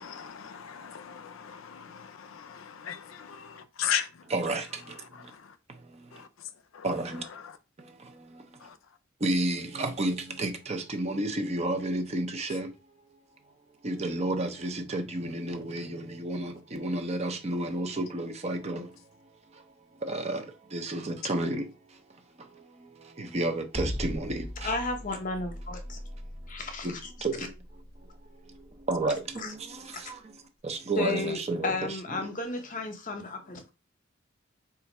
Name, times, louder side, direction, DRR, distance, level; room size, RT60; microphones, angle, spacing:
voice 1, 0.0-1.6 1.9-2.0 2.8-3.0 3.8-4.1, left 9 dB, 80° left, 0.4 m, -33 dB
voice 2, 4.3-5.3 5.7-6.2 6.8-7.2 7.8-8.6 9.2-12.7 13.8-18.9 19.5-19.6 20.0-22.0 22.4-24.7 26.1-26.2 26.8-27.5 28.0-28.1 28.4-30.3 30.6-31.7, right 2 dB, 35° right, 0.6 m, -32 dB
sound 1, 23.7-29.9, left 1 dB, 10° left, 0.5 m, -39 dB
voice 3, 24.6-26.0 26.5-27.0 29.4-29.5 31.0-33.7, left 3 dB, 40° left, 0.8 m, -33 dB
3.4 x 2.5 x 4.1 m
head